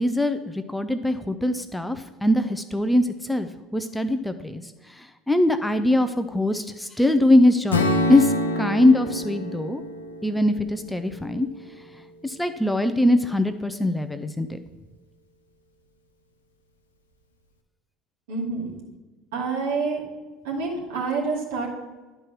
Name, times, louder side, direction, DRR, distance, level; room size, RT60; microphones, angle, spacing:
voice 1, 0.0-4.6 5.0-9.8 10.2-11.5 12.2-14.6, left 1 dB, 5° left, 9 dB, 0.6 m, -22 dB
Strum, 7.7-11.9, left 1 dB, 85° left, 0.8 m, -27 dB
voice 2, 18.3-18.7 19.3-20.0 20.4-21.7, right 4 dB, 70° right, -2 dB, 2.5 m, -27 dB
11.0 x 4.7 x 6.0 m, 1.3 s
figure-of-eight pair, 65°, 0 cm